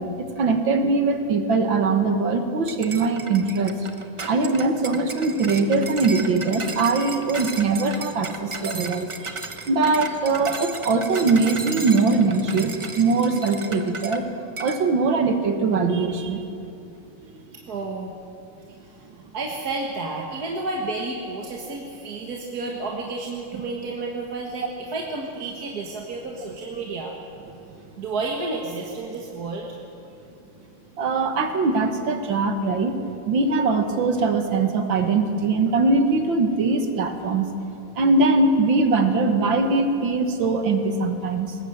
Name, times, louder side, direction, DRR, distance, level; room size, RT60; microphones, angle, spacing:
voice 1, 0.0-3.8 4.3-9.4 9.7-14.3 14.6-16.5 31.0-33.0 33.3-37.5 38.0-41.6, right 3 dB, 70° right, 6 dB, 2.3 m, -21 dB
Sounds For Earthquakes - Cutlery Metal, 2.7-14.2 14.6-14.8, right 3 dB, 35° right, 0.5 m, -35 dB
voice 2, 17.5-18.1 18.8-19.1 19.3-27.2 28.0-29.7, right 3 dB, 50° right, 0 dB, 2.0 m, -31 dB
21.0 x 18.5 x 7.9 m, 2.7 s
omnidirectional pair, 2.2 m